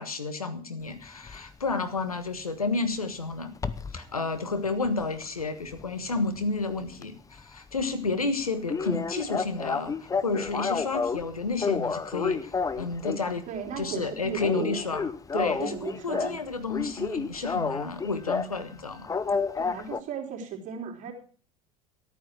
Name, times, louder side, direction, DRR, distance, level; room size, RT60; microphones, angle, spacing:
voice 1, 0.0-3.5 3.9-13.5 13.8-19.1, left 3 dB, 90° left, 10 dB, 1.3 m, -31 dB
sound 1, 1.3-1.5 3.6-4.0 4.5-6.6 6.9-7.1 7.4-7.5 7.8-7.9 8.1-8.2 8.7-11.2 11.6-13.3 13.7-14.0 14.3-16.4 16.7-18.6 19.1-20.0, left 5 dB, 20° left, 0.9 m, -30 dB
voice 2, 13.5-14.8 15.3-16.4 19.6-21.1, right 7 dB, 45° right, 0 dB, 3.9 m, -36 dB
14.0 x 9.2 x 6.2 m, 0.43 s
figure-of-eight pair, 75°, 18 cm